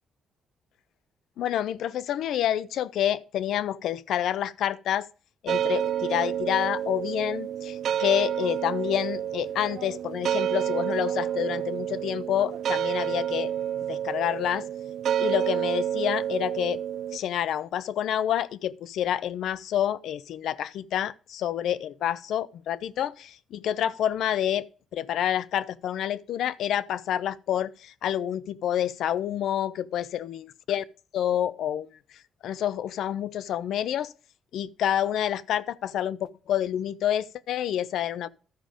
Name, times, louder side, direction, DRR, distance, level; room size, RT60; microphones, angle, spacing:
voice 1, 1.4-5.1 5.4-13.5 13.9-14.7 15.2-16.8 17.1-24.7 24.9-30.8 31.1-31.9 32.4-34.1 34.5-38.3, left 10 dB, 75° left, 0.4 m, -28 dB
sound 1, 5.5-17.2, right 10 dB, 70° right, 0.4 m, -29 dB
12.5 x 5.0 x 5.1 m
cardioid pair, 90°, 0 cm